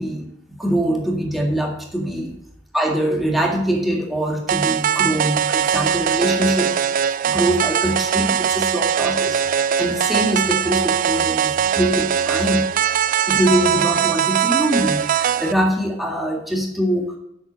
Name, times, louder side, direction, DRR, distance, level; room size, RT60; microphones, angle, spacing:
voice 1, 0.0-2.3 2.7-6.7 7.2-9.4 9.8-12.6 13.3-17.1, equal, ahead, 0 dB, 2.0 m, -23 dB
sound 1, 4.5-15.5, right 8 dB, 45° right, 0.3 m, -21 dB
8.1 x 5.9 x 7.4 m, 0.79 s
head